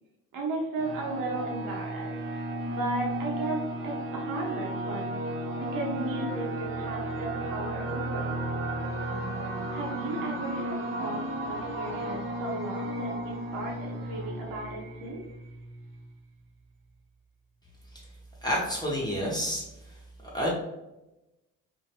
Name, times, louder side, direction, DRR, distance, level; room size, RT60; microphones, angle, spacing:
voice 1, 0.3-2.2 2.7-5.1 5.6-8.4 9.7-15.2, right 2 dB, 85° right, -1 dB, 0.8 m, -35 dB
sound 1, 0.8-16.1, right 1 dB, 40° right, 0.6 m, -34 dB
voice 2, 18.4-20.0 20.3-20.5, equal, 10° left, -5 dB, 0.8 m, -29 dB
2.6 x 2.1 x 2.8 m, 0.95 s
cardioid pair, 80°, 33 cm